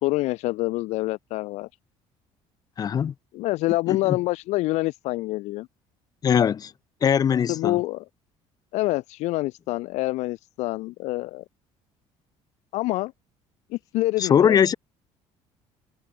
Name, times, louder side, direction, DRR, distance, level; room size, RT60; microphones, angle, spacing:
voice 1, 0.0-1.7 3.3-5.7 7.5-8.1 8.7-11.4 12.7-13.1 13.7-14.6, left 19 dB, 70° left, 0.5 m, -26 dB
voice 2, 2.8-3.1 3.9-4.2 6.2-6.7 7.0-7.8 14.2-14.7, left 8 dB, 30° left, 1.3 m, -21 dB
cardioid pair, 155°, 12 cm